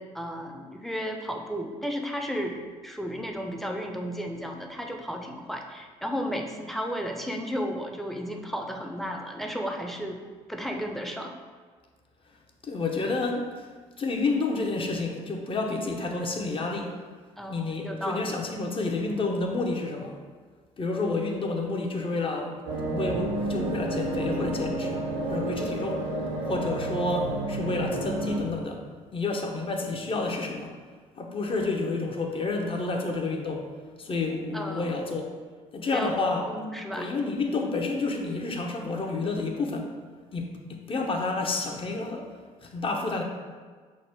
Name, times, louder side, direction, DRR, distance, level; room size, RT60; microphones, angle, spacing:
voice 1, 0.0-10.2 10.5-11.3 17.4-18.3 34.5-34.9 35.9-36.1 36.5-37.1, equal, ahead, 3 dB, 0.5 m, -33 dB
voice 2, 12.6-13.7 14.0-16.9 17.5-20.2 20.8-25.0 25.3-26.1 26.5-28.8 29.1-30.7 31.2-33.7 34.0-35.3 35.7-36.5 37.0-39.9 40.3-42.3 42.6-43.2, left 3 dB, 35° left, 2 dB, 0.7 m, -29 dB
sound 1, 22.7-28.4, right 2 dB, 85° right, 0.7 m, -30 dB
6.1 x 2.1 x 3.4 m, 1.5 s
hypercardioid pair, 60°, 16 cm